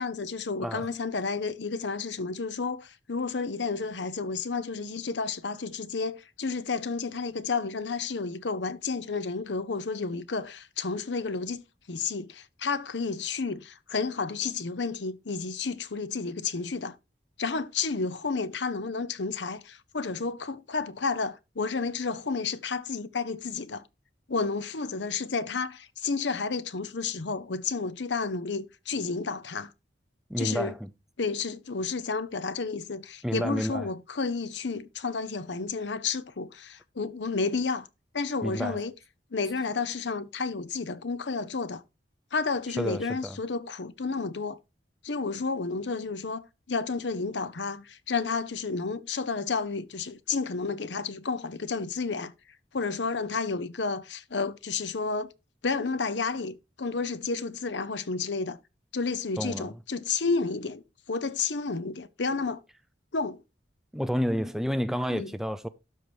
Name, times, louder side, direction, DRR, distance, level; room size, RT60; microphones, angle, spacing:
voice 1, 0.0-16.9 17.4-23.8 24.3-29.7 30.4-30.7 31.2-37.9 38.1-38.9 39.3-41.8 42.3-44.6 45.0-52.3 52.7-55.3 55.6-58.6 58.9-60.8 61.1-62.6 63.1-63.4 65.1-65.3, left 4 dB, 75° left, 0.8 m, -31 dB
voice 2, 30.3-30.9 33.2-33.8 38.4-38.8 42.8-43.4 59.4-59.7 63.9-65.7, equal, ahead, 0.5 m, -30 dB
12.5 x 4.9 x 4.5 m
head